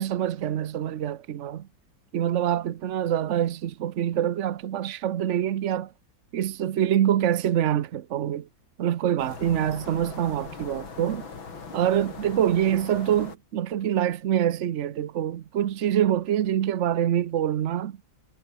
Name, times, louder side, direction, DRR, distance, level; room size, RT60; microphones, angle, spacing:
voice 1, 0.0-1.7 2.1-5.9 6.3-8.5 8.8-11.3 11.7-18.0, right 10 dB, 65° right, 0.7 m, -25 dB
sound 1, 9.2-13.4, left 5 dB, 75° left, 4.1 m, -40 dB
omnidirectional pair, 2.2 m